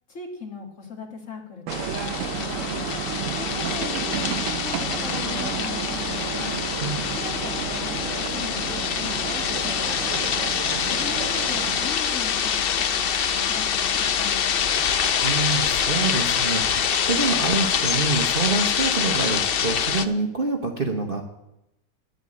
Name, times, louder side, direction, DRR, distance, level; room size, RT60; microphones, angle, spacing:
voice 1, 0.1-2.1 2.4-2.9 3.3-6.6 7.1-9.9 10.9-14.8, left 5 dB, 45° left, 2 dB, 2.1 m, -39 dB
sound 1, 1.7-20.1, left 8 dB, 65° left, 0.5 m, -25 dB
sound 2, 1.7-11.9, right 11 dB, 70° right, 0.8 m, -32 dB
voice 2, 15.2-21.2, right 3 dB, 35° right, 3 dB, 1.1 m, -26 dB
10.5 x 8.0 x 8.6 m, 0.86 s
omnidirectional pair, 1.8 m